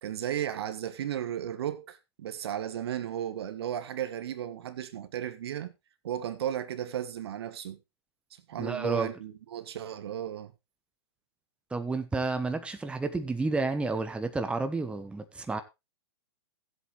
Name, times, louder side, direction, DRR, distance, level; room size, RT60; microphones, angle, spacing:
voice 1, 0.0-5.7 6.0-7.8 8.5-10.5, right 10 dB, 65° right, 1.5 m, -35 dB
voice 2, 8.6-9.1 11.7-15.6, right 3 dB, 5° right, 1.2 m, -30 dB
16.0 x 8.1 x 3.3 m
hypercardioid pair, 115°, 14 cm